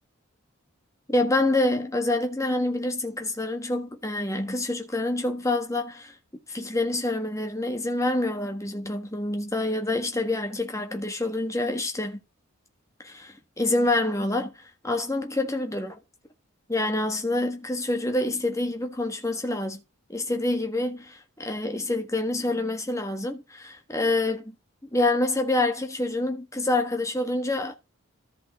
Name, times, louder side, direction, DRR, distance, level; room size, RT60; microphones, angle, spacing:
voice 1, 1.1-6.1 6.5-12.2 13.0-16.0 16.7-19.8 20.1-24.6 24.9-27.7, left 2 dB, 15° left, 1.4 m, -27 dB
14.0 x 5.4 x 3.7 m
head